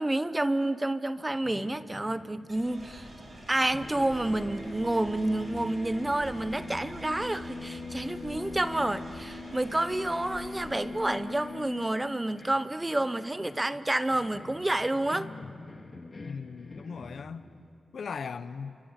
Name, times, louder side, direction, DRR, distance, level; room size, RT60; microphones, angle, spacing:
voice 1, 0.0-3.1 3.5-15.3, right 1 dB, 15° right, 0.7 m, -29 dB
sound 1, 1.3-3.5 3.7-17.7, left 3 dB, 35° left, 2.1 m, -43 dB
sound 2, 2.5-10.9, right 1 dB, 45° right, 7.5 m, -48 dB
sound 3, 3.7-8.9, right 2 dB, 90° right, 7.2 m, -51 dB
voice 2, 16.2-17.5 17.9-18.8, left 6 dB, 65° left, 0.9 m, -38 dB
28.5 x 25.5 x 7.2 m
wide cardioid pair, 105°, 0 cm